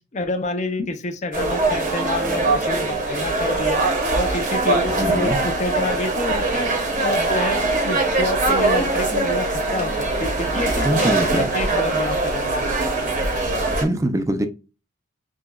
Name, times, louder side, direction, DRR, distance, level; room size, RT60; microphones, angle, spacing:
voice 1, 0.1-12.7 13.0-13.1, left 2 dB, 35° left, 0.5 m, -28 dB
sound 1, 1.3-13.8, right 2 dB, 40° right, 0.8 m, -22 dB
voice 2, 5.0-5.4 10.8-11.5 13.8-14.5, right 1 dB, 15° right, 0.4 m, -23 dB
6.1 x 2.2 x 2.2 m
head